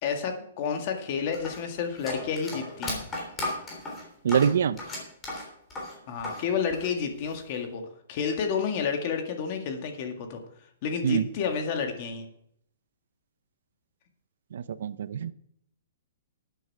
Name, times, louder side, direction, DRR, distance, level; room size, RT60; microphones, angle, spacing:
voice 1, 0.0-3.1 6.1-10.4 10.8-12.3, left 6 dB, 35° left, 4 dB, 1.8 m, -30 dB
sound 1, 1.3-6.4 6.7-7.6, left 2 dB, 10° left, 3.5 m, -35 dB
voice 2, 4.2-4.8 11.0-11.2 14.5-15.3, right 8 dB, 65° right, 16 dB, 0.6 m, -24 dB
13.0 x 9.1 x 4.7 m, 0.72 s
hypercardioid pair, 170°, 0 cm